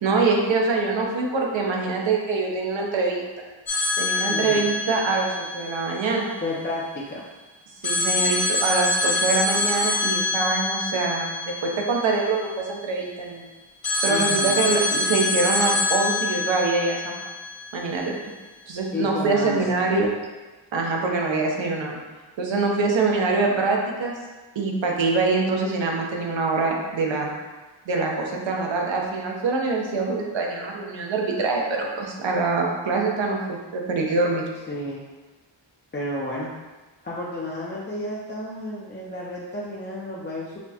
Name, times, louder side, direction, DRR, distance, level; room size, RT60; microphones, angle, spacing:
voice 1, 0.0-3.2 4.0-6.3 7.8-13.5 14.0-17.2 17.7-18.1 18.7-20.1 20.7-22.0 22.4-24.2 24.6-27.3 27.9-34.4, right 3 dB, 75° right, 0 dB, 0.8 m, -24 dB
sound 1, 3.7-6.6 7.8-12.8 13.8-18.0, left 2 dB, 55° left, 1.0 m, -26 dB
voice 2, 4.3-4.7 6.4-7.2 14.1-14.7 18.9-19.7 34.7-35.0 35.9-36.5 37.0-40.6, left 1 dB, 25° left, -5 dB, 0.5 m, -31 dB
5.8 x 2.1 x 2.8 m, 1.2 s
wide cardioid pair, 100°, 46 cm